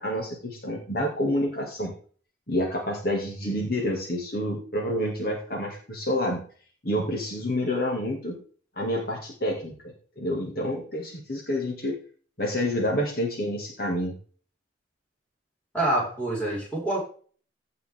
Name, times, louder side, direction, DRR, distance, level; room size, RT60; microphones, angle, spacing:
voice 1, 0.0-1.9 2.5-6.4 6.8-8.4 8.8-9.7 10.2-12.0 12.4-14.1, equal, 50° left, -1 dB, 2.7 m, -28 dB
voice 2, 15.7-17.0, right 1 dB, 5° left, -5 dB, 5.9 m, -26 dB
16.5 x 5.7 x 3.9 m, 0.42 s
head